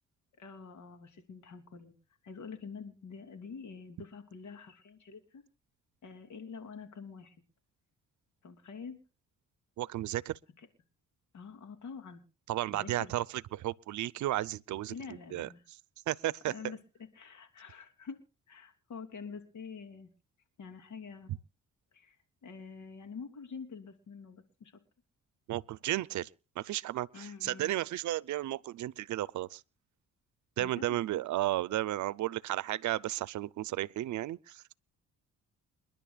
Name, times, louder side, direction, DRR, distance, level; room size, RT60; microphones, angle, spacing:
voice 1, 0.4-1.9 2.2-5.4 6.0-7.3 8.4-9.0 10.6-10.7 11.3-12.2 12.7-13.1 14.9-15.6 16.4-16.8 17.1-18.2 18.5-20.1 20.6-21.3 21.9-22.2 22.4-24.7 27.1-27.7 30.6-31.0, left 5 dB, 70° left, 3.2 m, -46 dB
voice 2, 9.8-10.4 12.5-13.2 13.5-15.5 16.1-16.5 25.5-26.3 26.6-29.6 30.6-34.8, right 14 dB, 70° right, 0.7 m, -33 dB
29.0 x 11.0 x 2.4 m
cardioid pair, 90°, 30 cm